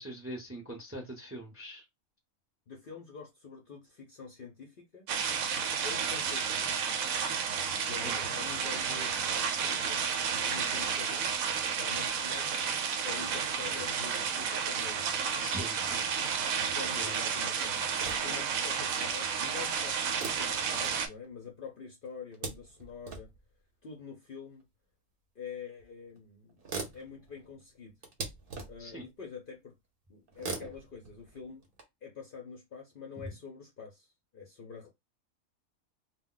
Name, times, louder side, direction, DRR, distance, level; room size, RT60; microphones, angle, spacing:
voice 1, 0.0-1.8 8.0-8.1 15.4-16.3 17.0-17.1 28.8-29.0 33.2-33.3, equal, 15° right, 0.5 m, -42 dB
voice 2, 2.7-5.1 5.8-6.7 7.8-12.6 13.0-15.2 16.7-23.3 23.8-24.6 25.4-26.6 26.9-28.0 28.7-29.7 30.1-31.6 32.0-34.9, left 6 dB, 55° left, 0.6 m, -46 dB
sound 1, 5.1-21.1, right 6 dB, 80° right, 1.0 m, -31 dB
sound 2, 17.9-18.5 20.1-21.5 22.0-23.4 24.6-24.7 25.8-25.9 26.2-26.3 26.5-29.0 30.3-31.8, right 3 dB, 50° right, 0.8 m, -42 dB
2.2 x 2.2 x 3.7 m
omnidirectional pair, 1.5 m